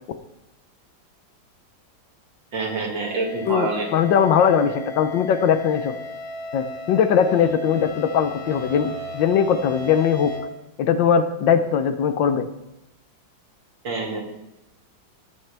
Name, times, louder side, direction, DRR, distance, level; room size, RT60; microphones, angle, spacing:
voice 1, 2.5-3.9 13.8-14.2, right 3 dB, 70° right, 0 dB, 2.8 m, -26 dB
sound 1, 3.0-10.4, equal, 10° left, 5.3 m, -35 dB
voice 2, 3.5-6.0 6.5-10.3 10.8-12.5, left 7 dB, 70° left, 10 dB, 1.4 m, -20 dB
17.0 x 8.6 x 3.4 m, 0.90 s
omnidirectional pair, 2.2 m